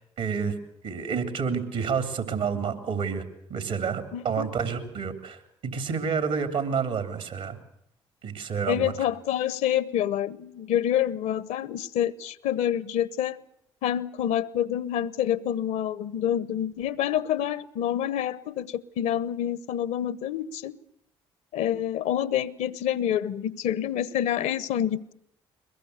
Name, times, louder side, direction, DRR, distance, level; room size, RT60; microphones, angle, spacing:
voice 1, 0.2-0.5 0.8-3.2 3.5-7.6 8.2-8.9, right 6 dB, 70° right, 10 dB, 3.4 m, -29 dB
voice 2, 4.1-4.5 8.7-13.4 13.8-20.8 21.5-25.1, left 10 dB, 75° left, 20 dB, 1.0 m, -27 dB
22.5 x 21.0 x 8.2 m, 0.72 s
hypercardioid pair, 50°, 12 cm